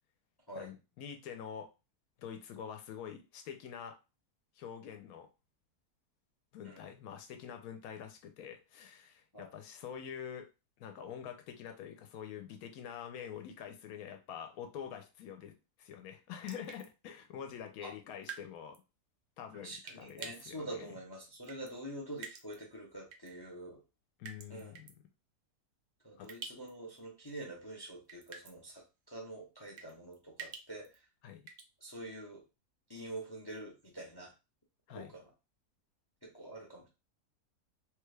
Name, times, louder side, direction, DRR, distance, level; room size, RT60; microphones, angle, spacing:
voice 1, 0.6-1.7 2.2-4.0 4.6-5.3 6.5-10.5 10.8-15.5 15.8-18.8 19.4-20.9 24.2-24.9 26.2-26.3 31.2-31.4 34.9-35.1, left 8 dB, 80° left, 5 dB, 1.1 m, -46 dB
sound 1, 16.4-16.9 18.2-18.5 18.7-18.8 19.9-20.4 21.4-21.7 22.2-22.6 23.1-23.3 24.2-24.9 26.2-26.7 27.0-27.1 28.1-28.6 29.8-31.0 31.5-31.7, right 6 dB, 60° right, 0.7 m, -47 dB
voice 2, 19.6-23.8 24.5-24.7 26.0-31.0 31.8-32.4 32.9-34.3 34.9-35.2 36.2-36.9, right 1 dB, 35° left, -1 dB, 0.4 m, -46 dB
3.3 x 2.3 x 3.2 m, 0.28 s
omnidirectional pair, 1.6 m